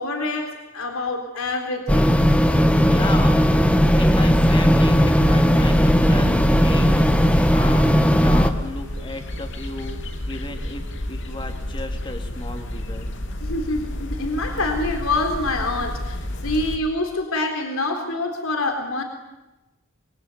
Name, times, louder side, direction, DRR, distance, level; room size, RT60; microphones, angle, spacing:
voice 1, 0.0-2.1 13.4-19.0, left 2 dB, 80° left, 5 dB, 4.0 m, -26 dB
sound 1, 1.9-8.5, equal, 5° left, 1.7 m, -17 dB
voice 2, 2.8-10.0 10.3-13.1, left 2 dB, 25° left, 5 dB, 2.9 m, -33 dB
sound 2, 4.4-16.8, left 1 dB, 60° left, 3.1 m, -31 dB
26.5 x 24.0 x 9.3 m, 1.0 s
head